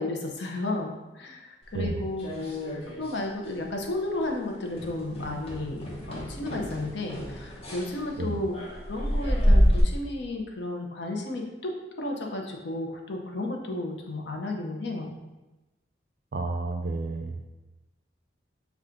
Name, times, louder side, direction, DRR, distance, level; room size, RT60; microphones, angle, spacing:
voice 1, 0.0-8.6 8.9-15.2, left 2 dB, 70° left, 1 dB, 0.7 m, -33 dB
sound 1, 1.7-3.2 3.4-3.8 4.1-4.3 4.7-9.8, equal, 30° left, 0.9 m, -28 dB
voice 2, 16.3-17.5, right 3 dB, 55° right, 5 dB, 0.4 m, -31 dB
5.6 x 2.4 x 3.7 m, 1.1 s
head